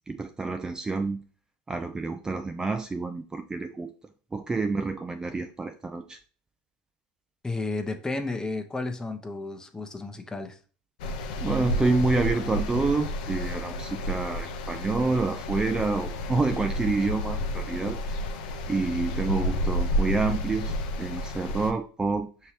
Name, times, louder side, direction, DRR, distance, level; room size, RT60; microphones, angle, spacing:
voice 1, 0.1-1.2 1.7-3.9 4.3-6.2 11.4-18.2 18.7-22.5, right 3 dB, 15° right, 7 dB, 0.4 m, -28 dB
voice 2, 7.4-10.6, left 3 dB, 15° left, 6 dB, 0.7 m, -32 dB
sound 1, 11.0-21.7, left 1 dB, 75° left, 0.6 m, -31 dB
5.5 x 2.8 x 3.1 m, 0.39 s
hypercardioid pair, 90°, 5 cm